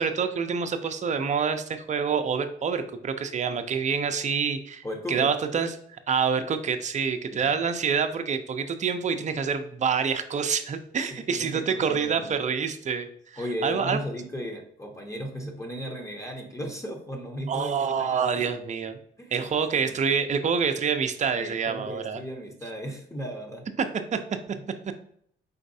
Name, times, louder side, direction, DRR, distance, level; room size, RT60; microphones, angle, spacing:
voice 1, 0.0-4.8 5.1-14.0 17.5-19.0 19.3-22.2 23.8-24.2 24.5-24.6, right 6 dB, 35° right, 8 dB, 0.5 m, -27 dB
voice 2, 4.8-5.3 7.3-7.5 11.1-12.3 13.4-18.5 19.2-20.0 21.4-23.7 24.5-24.6, equal, 15° left, 1 dB, 0.9 m, -36 dB
4.3 x 4.0 x 2.7 m, 0.66 s
cardioid pair, 90°, 20 cm